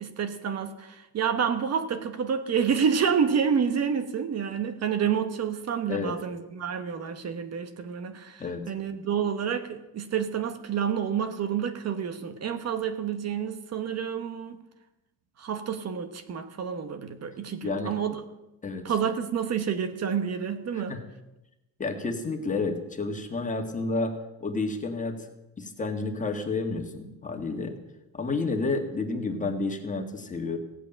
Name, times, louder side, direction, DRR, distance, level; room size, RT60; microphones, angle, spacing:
voice 1, 0.0-14.6 15.4-18.2 18.8-20.9, right 7 dB, 45° right, 9 dB, 1.2 m, -29 dB
voice 2, 17.6-17.9 18.6-18.9 20.7-21.0 21.8-24.2 24.4-25.3 25.6-27.8 28.1-30.6, left 3 dB, 20° left, 4 dB, 1.7 m, -30 dB
16.5 x 8.4 x 8.9 m, 0.98 s
cardioid pair, 155°, 36 cm